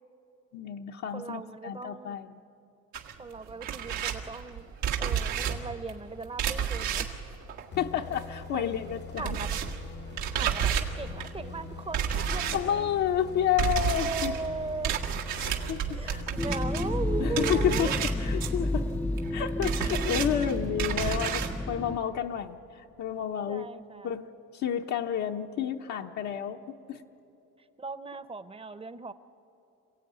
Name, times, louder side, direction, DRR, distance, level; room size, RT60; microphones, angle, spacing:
voice 1, 0.5-2.3 7.8-9.4 12.5-14.3 15.4-16.3 17.2-17.9 18.2-18.9 19.3-22.6 23.0-23.6 24.0-24.3 24.5-26.6 26.9-27.0, left 9 dB, 70° left, 2 dB, 0.9 m, -30 dB
voice 2, 1.1-2.2 3.2-4.7 5.0-7.1 8.5-8.7 9.2-9.6 10.3-12.9 14.0-15.0 15.9-18.0 23.5-24.1 27.8-29.1, right 4 dB, 20° right, 13 dB, 0.8 m, -38 dB
sound 1, 2.9-8.5 8.7-21.6, right 8 dB, 85° right, 1.9 m, -32 dB
sound 2, 7.7-19.4, left 6 dB, 35° left, 0.8 m, -44 dB
sound 3, 16.4-22.0, left 1 dB, 5° left, 0.5 m, -31 dB
27.0 x 16.0 x 9.3 m, 2.9 s
cardioid pair, 95°, 29 cm